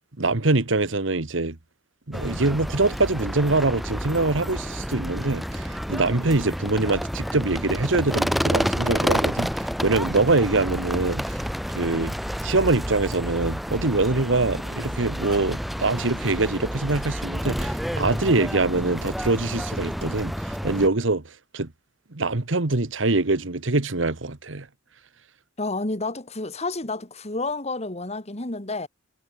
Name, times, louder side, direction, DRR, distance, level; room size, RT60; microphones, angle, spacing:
voice 1, 0.2-1.6 2.1-11.4 11.7-12.1 12.4-21.2 21.5-21.7 22.1-24.7, right 3 dB, 80° right, 1.5 m, -24 dB
sound 1, 2.1-20.9, equal, ahead, 1.0 m, -29 dB
voice 2, 25.6-28.9, left 2 dB, 35° left, 2.3 m, -30 dB
head